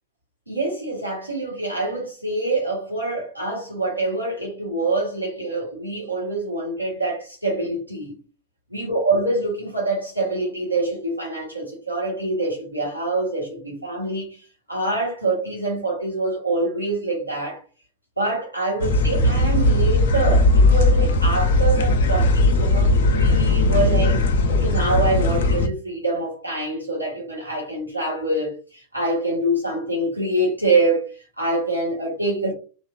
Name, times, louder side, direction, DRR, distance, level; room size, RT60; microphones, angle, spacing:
voice 1, 0.5-8.2 8.7-14.4 14.7-17.6 18.2-24.2 24.5-32.5, right 2 dB, 85° right, 1.1 m, -25 dB
sound 1, 18.8-25.7, left 2 dB, 60° left, 0.5 m, -18 dB
3.0 x 2.3 x 2.3 m
figure-of-eight pair, 90°, 0 cm